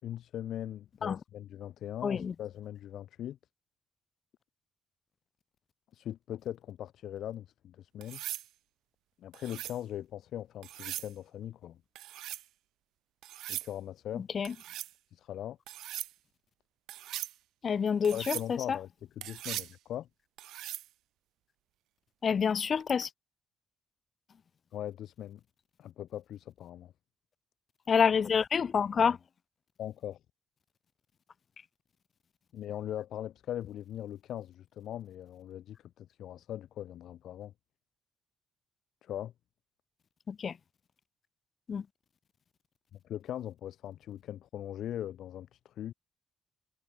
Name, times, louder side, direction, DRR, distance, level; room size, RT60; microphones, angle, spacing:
voice 1, 0.0-3.4 5.9-8.2 9.2-11.8 13.5-14.3 15.1-15.6 18.1-18.9 19.2-20.1 24.7-25.4 25.8-26.9 29.8-30.2 32.5-37.5 39.0-39.3 43.0-45.9, left 11 dB, 75° left, 4.0 m, -40 dB
voice 2, 2.0-2.3 14.2-14.5 17.6-18.8 22.2-23.1 27.9-29.2 40.3-40.6 41.7-41.9, left 6 dB, 45° left, 0.4 m, -28 dB
sound 1, 8.0-8.5 9.3-9.8 10.6-11.1 12.0-12.4 13.2-13.7 14.4-14.9 15.7-16.1 16.9-17.3 18.0-18.5 19.2-19.7 20.4-20.9 22.8-23.1, right 14 dB, 85° right, 2.0 m, -40 dB
cardioid pair, 90°, 0 cm